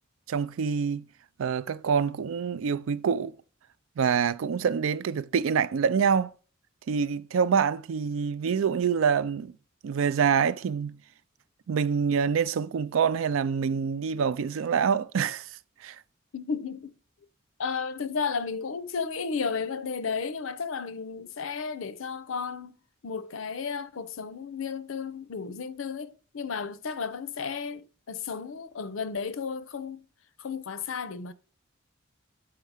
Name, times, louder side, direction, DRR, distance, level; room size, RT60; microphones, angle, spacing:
voice 1, 0.3-1.1 1.4-3.3 4.0-6.3 6.9-9.5 9.8-11.0 11.7-16.0, right 6 dB, 70° right, 0.4 m, -26 dB
voice 2, 16.3-16.9 17.6-22.7 23.0-30.0 30.4-31.3, left 5 dB, 70° left, 0.6 m, -33 dB
6.6 x 4.6 x 4.8 m
head